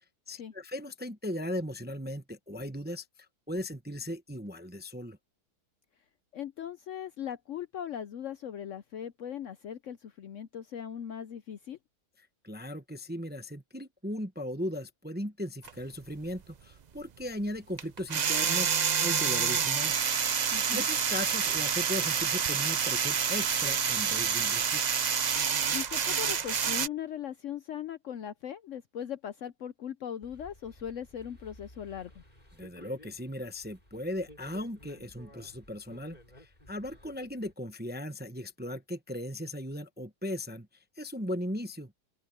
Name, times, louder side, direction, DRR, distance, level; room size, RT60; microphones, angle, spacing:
voice 1, 0.3-3.0 3.5-5.2 12.4-18.7 19.0-20.0 20.7-24.9 32.6-40.7 41.0-41.9, left 1 dB, 10° right, 0.7 m, -37 dB
voice 2, 6.3-11.8 20.5-20.8 25.7-32.1, left 9 dB, 65° left, 0.8 m, -39 dB
sound 1, 15.6-15.7 17.8-26.9, right 7 dB, 70° right, 0.4 m, -28 dB
sound 2, 30.2-37.5, left 1 dB, 25° left, 6.7 m, -55 dB
open air
omnidirectional pair, 1.7 m